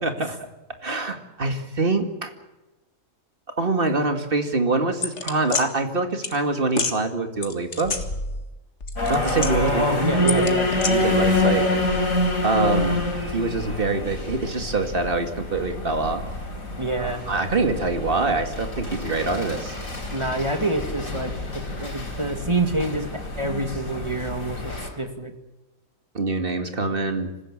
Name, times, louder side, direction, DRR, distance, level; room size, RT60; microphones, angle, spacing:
voice 1, 0.0-0.5 0.8-2.3 3.6-8.0 9.1-9.8 10.9-12.0 12.4-13.0 13.3-16.2 17.0-19.7 26.1-27.3, right 3 dB, 40° right, 6 dB, 2.5 m, -25 dB
sound 1, 5.0-5.6 6.2-6.4 6.7-7.0 7.4-8.5 8.8-9.8 10.3-10.9, left 3 dB, 55° left, 2.1 m, -28 dB
sound 2, 9.0-24.9, left 2 dB, 70° left, 4.7 m, -27 dB
voice 2, 9.6-10.7 16.8-17.2 20.1-21.3 21.8-23.1 23.4-25.3, right 2 dB, 20° right, 5 dB, 2.3 m, -26 dB
26.0 x 15.5 x 8.9 m, 1.0 s
omnidirectional pair, 1.4 m